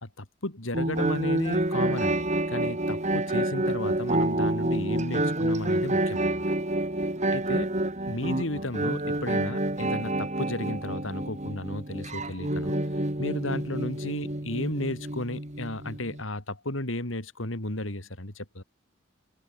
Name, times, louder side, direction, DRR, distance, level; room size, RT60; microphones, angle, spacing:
voice 1, 0.0-6.4 7.3-7.7 8.1-12.8 13.2-18.6, left 1 dB, 80° left, 3.8 m, -34 dB
sound 1, 0.7-16.2, right 1 dB, 35° right, 3.8 m, -28 dB
head